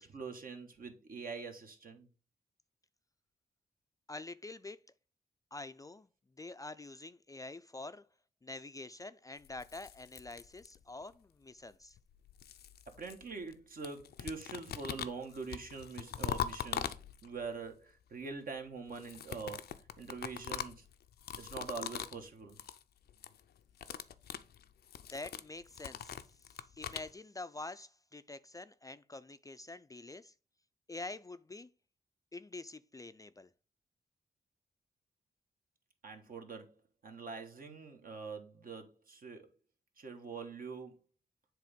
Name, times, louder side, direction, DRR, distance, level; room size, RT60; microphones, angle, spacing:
voice 1, 0.0-2.1 13.0-16.9 17.2-20.8 21.4-22.6 36.0-36.8 37.0-39.5 40.0-40.9, right 4 dB, 65° right, 1.3 m, -44 dB
voice 2, 4.1-4.8 5.5-6.1 6.4-8.1 8.4-12.0 25.1-30.3 30.9-31.7 32.3-33.5, left 2 dB, 20° left, 0.3 m, -46 dB
sound 1, 9.4-11.0 12.0-13.6 13.8-17.5 18.9-22.2 22.5-22.8 23.1-23.4 23.7-27.1, left 9 dB, 85° left, 0.5 m, -42 dB
7.5 x 3.0 x 5.0 m
cardioid pair, 70°, 16 cm